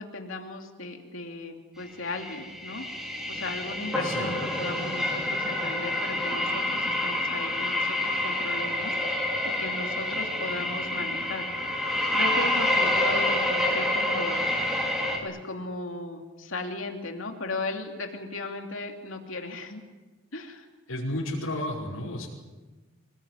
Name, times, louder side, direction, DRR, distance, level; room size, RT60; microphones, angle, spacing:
voice 1, 0.0-2.8 3.3-9.3 9.6-11.5 12.1-14.5 15.2-19.8 20.3-20.7, left 2 dB, 70° left, 3 dB, 2.8 m, -36 dB
sound 1, 2.0-15.2, left 1 dB, ahead, 5.5 m, -28 dB
voice 2, 20.9-22.3, left 1 dB, 85° left, -7 dB, 5.3 m, -32 dB
27.5 x 19.5 x 9.5 m, 1.2 s
head